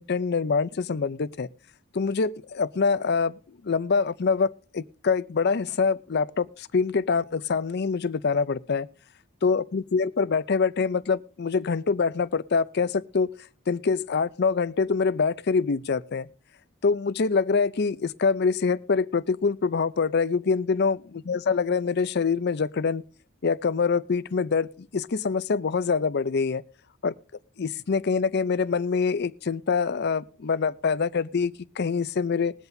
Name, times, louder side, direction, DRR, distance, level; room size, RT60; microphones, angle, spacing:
voice 1, 0.0-1.5 1.9-3.4 3.6-8.9 9.4-13.3 13.7-16.3 16.8-23.0 23.4-26.6 27.0-27.1 27.6-32.5, left 5 dB, 50° left, 0.5 m, -25 dB
21.0 x 8.1 x 2.7 m
head